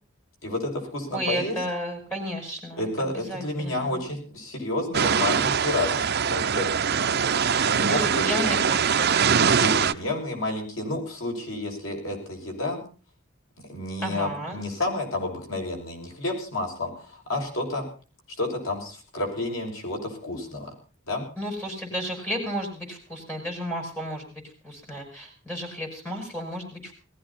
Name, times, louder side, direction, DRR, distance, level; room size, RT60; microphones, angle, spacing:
voice 1, 0.4-1.6 2.8-7.3 7.6-8.3 9.5-12.8 13.7-17.9 18.4-20.7 21.1-21.3, left 2 dB, 75° left, 2 dB, 6.7 m, -30 dB
voice 2, 1.1-4.0 7.8-9.2 14.0-14.6 21.4-27.0, equal, 10° left, 2 dB, 6.9 m, -33 dB
sound 1, 4.9-9.9, right 6 dB, 50° right, 0.8 m, -22 dB
19.0 x 15.5 x 4.3 m, 0.38 s
head